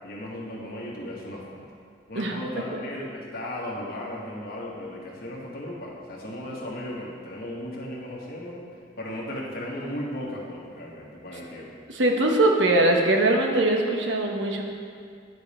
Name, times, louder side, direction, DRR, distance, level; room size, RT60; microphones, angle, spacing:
voice 1, 0.0-1.6 2.1-8.6 9.0-11.7, left 1 dB, 55° left, -3 dB, 1.4 m, -36 dB
voice 2, 11.9-14.6, right 2 dB, 85° right, 2 dB, 1.0 m, -21 dB
10.0 x 5.1 x 4.3 m, 2.2 s
head